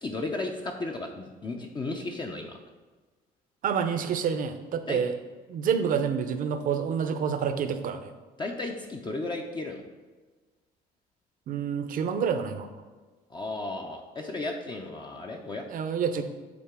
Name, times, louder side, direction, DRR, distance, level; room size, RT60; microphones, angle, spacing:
voice 1, 0.0-2.6 4.9-5.0 8.4-9.8 13.3-15.7, left 2 dB, 25° left, 2 dB, 0.6 m, -34 dB
voice 2, 3.6-5.1 5.5-8.1 11.5-12.7 15.7-16.2, right 7 dB, 55° right, 8 dB, 0.7 m, -28 dB
8.5 x 3.9 x 3.6 m, 1.3 s
cardioid pair, 110°, 17 cm